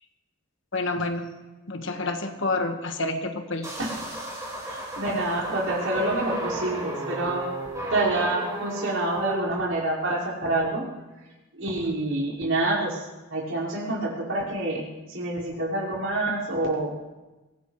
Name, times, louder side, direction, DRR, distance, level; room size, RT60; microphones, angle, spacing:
voice 1, 0.7-1.3 1.7-3.7, left 2 dB, 60° left, 6 dB, 1.5 m, -28 dB
sound 1, 3.6-9.3, right 1 dB, 15° right, 5.3 m, -34 dB
voice 2, 4.6-7.5 7.9-10.8 11.5-13.0 13.3-16.9, right 2 dB, 65° right, -5 dB, 5.4 m, -27 dB
24.5 x 18.0 x 3.3 m, 1.1 s
head